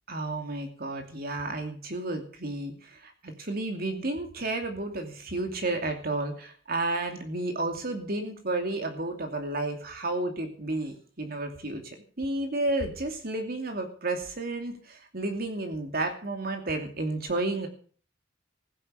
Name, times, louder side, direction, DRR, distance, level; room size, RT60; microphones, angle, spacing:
voice 1, 0.1-17.7, right 2 dB, 50° right, 4 dB, 2.6 m, -32 dB
16.0 x 10.0 x 6.4 m, 0.43 s
head